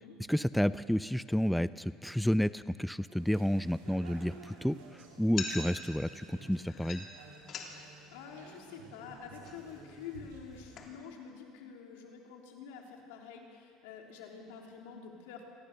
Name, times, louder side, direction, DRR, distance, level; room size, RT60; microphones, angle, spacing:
voice 1, 0.3-7.1, equal, ahead, 16 dB, 0.5 m, -30 dB
sound 1, 3.1-10.9, right 4 dB, 85° right, 3.9 m, -54 dB
sound 2, 3.8-11.1, left 4 dB, 50° left, 3.4 m, -47 dB
voice 2, 8.1-15.5, left 6 dB, 80° left, 1 dB, 3.4 m, -48 dB
24.5 x 18.0 x 6.8 m, 2.4 s
supercardioid pair, 85°, 0 cm